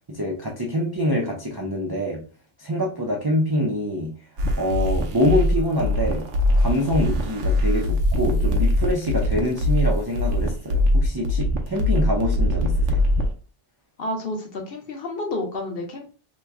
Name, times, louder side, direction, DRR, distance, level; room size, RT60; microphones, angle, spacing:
voice 1, 0.1-2.2 2.6-4.1 4.6-6.3 6.6-13.0, equal, 35° right, -1 dB, 0.4 m, -25 dB
sound 1, 4.4-13.3, left 1 dB, 80° right, 1.0 m, -22 dB
voice 2, 14.0-16.1, left 2 dB, 60° left, 2 dB, 0.9 m, -30 dB
3.0 x 2.2 x 3.5 m, 0.37 s
omnidirectional pair, 1.2 m